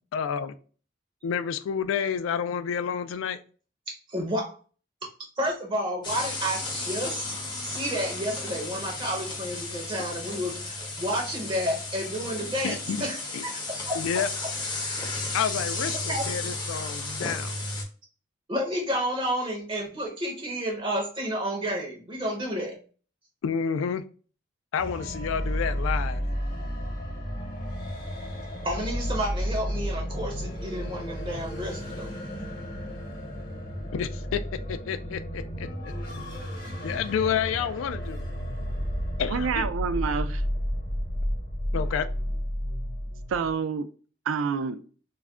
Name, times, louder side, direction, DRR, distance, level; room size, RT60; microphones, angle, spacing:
voice 1, 0.1-0.5 1.2-3.4 12.6-13.4 13.9-14.3 15.3-17.6 23.4-24.0 24.7-26.2 33.9-34.4 34.7-35.7 36.1-36.2 36.8-38.2 39.2-39.7 41.7-42.1, left 7 dB, 85° left, 12 dB, 0.3 m, -29 dB
voice 2, 4.1-4.6 5.4-7.2 7.5-14.2 16.1-16.3 18.5-22.8 28.6-32.1, equal, 25° right, 0 dB, 0.5 m, -31 dB
sound 1, 6.0-17.8, left 2 dB, 25° left, 0.5 m, -34 dB
sound 2, 24.8-43.5, equal, 50° left, 0.9 m, -32 dB
voice 3, 39.3-40.4 43.3-43.9 44.3-44.8, right 5 dB, 90° right, 11 dB, 0.3 m, -28 dB
2.3 x 2.1 x 3.5 m, 0.39 s
head